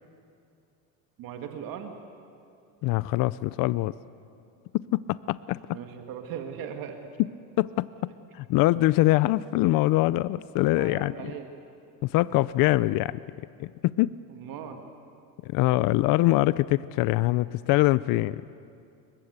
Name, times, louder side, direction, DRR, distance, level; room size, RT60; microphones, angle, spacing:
voice 1, 1.2-1.9 5.7-7.0 10.7-11.5 14.3-14.8, right 8 dB, 60° right, 5 dB, 2.1 m, -38 dB
voice 2, 2.8-3.9 4.7-5.8 7.2-7.3 7.6-11.3 12.0-13.2 13.6-14.1 15.4-18.4, left 18 dB, 55° left, 18 dB, 0.5 m, -24 dB
29.0 x 23.0 x 8.2 m, 2.5 s
cardioid pair, 155°, 40 cm